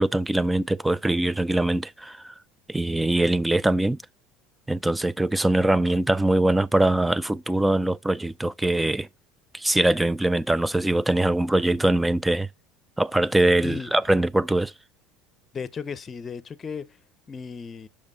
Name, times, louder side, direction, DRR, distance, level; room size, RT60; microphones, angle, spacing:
voice 1, 0.0-2.3 2.7-4.0 4.7-9.1 9.5-12.5 13.0-14.7, right 1 dB, 10° right, 0.4 m, -22 dB
voice 2, 15.5-17.0 17.3-17.9, left 6 dB, 30° left, 0.7 m, -35 dB
5.7 x 5.2 x 4.9 m
hypercardioid pair, 75°, 0 cm